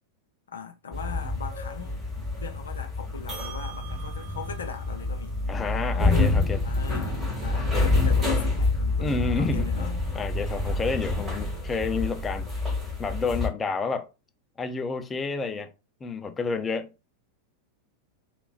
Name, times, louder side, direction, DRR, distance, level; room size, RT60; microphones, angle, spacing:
voice 1, 0.5-2.1 2.4-5.4 6.6-10.0, left 6 dB, 70° left, 0.7 m, -40 dB
sound 1, 0.9-13.5, left 2 dB, 15° right, 2.1 m, -27 dB
voice 2, 5.5-6.7 9.0-9.7 10.1-12.5 13.0-14.1 14.6-15.7 16.0-16.9, left 4 dB, 15° left, 0.6 m, -29 dB
3.4 x 2.9 x 2.5 m
figure-of-eight pair, 90°, 0 cm